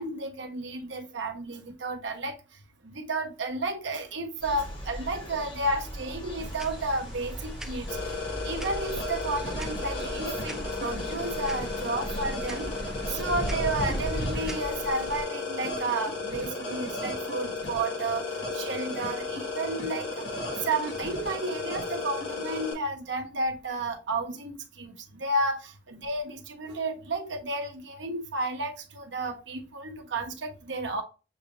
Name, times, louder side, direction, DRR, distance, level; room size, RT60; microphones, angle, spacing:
voice 1, 0.0-2.3 2.8-7.9 8.4-12.7 13.1-18.2 18.5-20.1 20.7-24.5 24.8-24.9 25.2-25.6 25.9-31.0, right 2 dB, 70° right, 0.9 m, -32 dB
sound 1, 4.4-14.7, right 1 dB, 25° left, 1.4 m, -37 dB
sound 2, 6.4-15.2, right 1 dB, 5° right, 0.4 m, -42 dB
sound 3, 7.9-22.7, left 3 dB, 65° left, 1.7 m, -34 dB
6.9 x 2.5 x 2.9 m
head